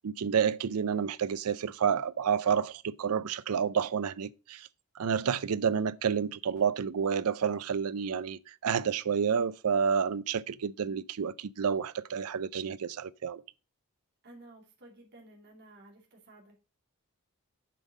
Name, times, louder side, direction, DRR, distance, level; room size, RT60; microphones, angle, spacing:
voice 1, 0.0-4.7 5.0-13.4, right 7 dB, 80° right, 0.5 m, -29 dB
voice 2, 14.2-16.6, right 1 dB, 50° right, 2.5 m, -54 dB
7.7 x 5.5 x 4.9 m
head